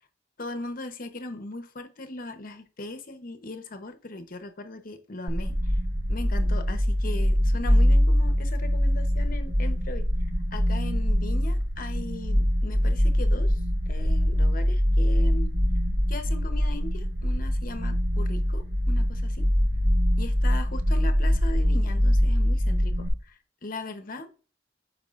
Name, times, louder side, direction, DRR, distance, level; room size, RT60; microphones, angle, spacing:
voice 1, 0.4-5.7 6.1-10.1 10.5-13.6 13.9-15.5 16.1-19.5 20.2-24.3, left 2 dB, 50° left, 0.8 m, -38 dB
sound 1, 5.3-23.1, equal, 80° right, 1.2 m, -23 dB
8.8 x 4.8 x 2.4 m
head